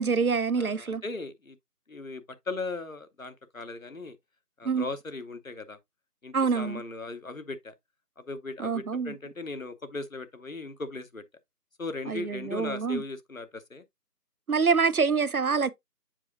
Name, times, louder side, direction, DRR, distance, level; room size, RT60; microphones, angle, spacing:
voice 1, 0.0-1.0 4.6-4.9 6.3-6.8 8.6-9.1 12.1-13.0 14.5-15.7, right 5 dB, 65° right, 0.6 m, -26 dB
voice 2, 0.6-1.6 1.9-4.2 4.6-5.8 6.2-7.7 8.2-11.2 11.8-13.8, left 3 dB, 55° left, 0.9 m, -38 dB
7.4 x 5.7 x 2.4 m
figure-of-eight pair, 180°, 49 cm